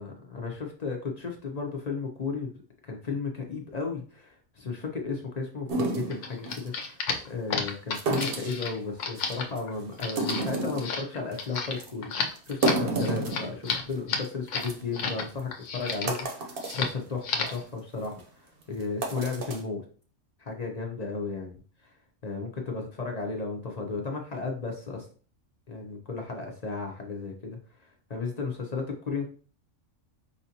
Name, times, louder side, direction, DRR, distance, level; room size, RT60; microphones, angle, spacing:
voice 1, 0.0-2.5 2.8-7.0 7.3-19.8 20.4-21.5 21.8-21.9 22.2-25.0 25.7-29.3, left 4 dB, 45° left, 1 dB, 0.6 m, -34 dB
sound 1, 5.7-6.7 7.9-8.7 9.2-9.6 10.0-10.9 11.3-11.4 11.8-11.9 12.4-13.9 14.2-14.3 14.6-14.7 15.4-15.5 15.9-16.8 17.3-17.6 18.0-18.2 18.8-19.6, right 2 dB, 55° right, 0.9 m, -30 dB
sound 2, 6.1-15.2 15.5-16.3 16.6-17.0 17.2-17.6, left 5 dB, 75° left, 1.0 m, -32 dB
5.0 x 2.6 x 2.7 m, 0.40 s
omnidirectional pair, 1.3 m